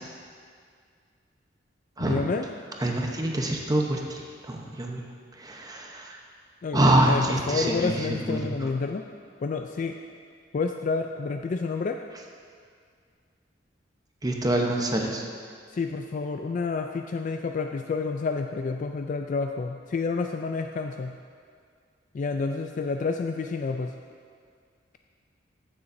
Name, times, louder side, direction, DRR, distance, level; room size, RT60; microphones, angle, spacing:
voice 1, 2.0-2.5 6.6-9.1 9.4-10.0 10.5-12.0 15.7-21.2 22.1-23.9, left 4 dB, 45° left, 5 dB, 0.3 m, -29 dB
voice 2, 2.8-5.1 5.4-6.2 6.7-8.5 14.2-15.2, right 1 dB, 20° right, 0 dB, 0.8 m, -25 dB
15.0 x 7.0 x 2.6 m, 2.1 s
head